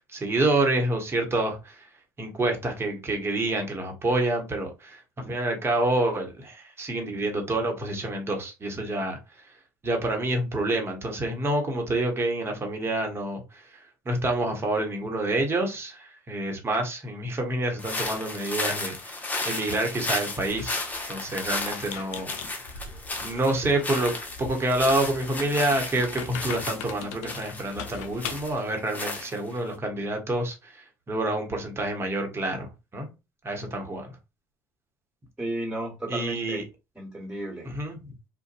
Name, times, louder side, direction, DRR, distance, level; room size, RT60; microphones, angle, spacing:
voice 1, 0.0-1.9 2.2-9.2 9.8-13.6 14.0-19.2 19.4-20.8 21.1-22.3 23.2-24.1 24.4-33.1 33.4-34.2 36.1-36.6 37.6-38.0, right 2 dB, 30° right, 1.1 m, -28 dB
sound 1, 17.8-29.7, left 2 dB, 20° left, 0.8 m, -34 dB
Squeak, 20.5-28.6, left 7 dB, 80° left, 0.5 m, -41 dB
voice 2, 35.4-36.6 36.9-37.7, right 1 dB, 5° right, 1.5 m, -33 dB
2.5 x 2.2 x 2.5 m
supercardioid pair, 80°, 9 cm